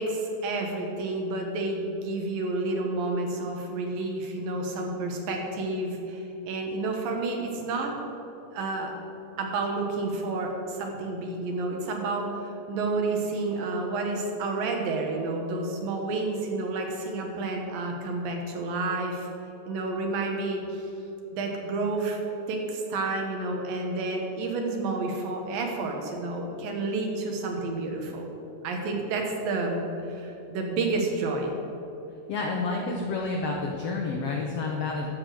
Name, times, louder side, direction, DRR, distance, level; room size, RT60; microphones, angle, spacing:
voice 1, 0.0-7.9 8.5-8.9 9.4-19.3 19.7-20.9 21.3-28.3 28.6-31.5, right 3 dB, 85° right, 1 dB, 3.0 m, -30 dB
voice 2, 32.3-35.1, left 3 dB, 75° left, 0 dB, 1.4 m, -29 dB
12.5 x 5.1 x 7.6 m, 2.9 s
omnidirectional pair, 3.9 m